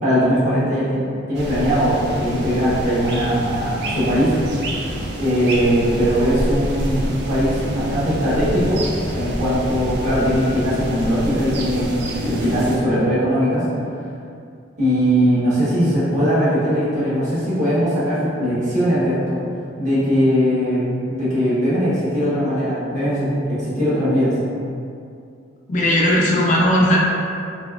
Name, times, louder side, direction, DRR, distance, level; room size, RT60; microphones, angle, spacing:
voice 1, 0.0-4.4 5.2-13.6 14.8-19.4 19.8-24.3, equal, 40° right, -11 dB, 1.2 m, -20 dB
sound 1, 1.3-12.8, right 1 dB, 60° right, 0.4 m, -27 dB
voice 2, 25.7-27.0, left 1 dB, 40° left, -3 dB, 0.4 m, -17 dB
4.0 x 2.4 x 2.4 m, 2.4 s
head